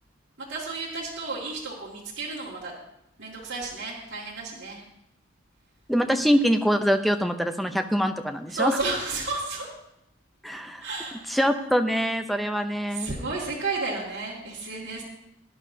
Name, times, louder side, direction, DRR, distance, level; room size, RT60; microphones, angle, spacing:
voice 1, 0.5-2.7 3.2-4.8 8.5-9.7 10.8-11.2 12.9-15.0, right 3 dB, 80° right, -6 dB, 2.2 m, -32 dB
voice 2, 5.9-8.8 10.4-10.9 11.3-13.1, equal, ahead, 6 dB, 0.6 m, -24 dB
18.0 x 10.5 x 2.8 m, 0.80 s
head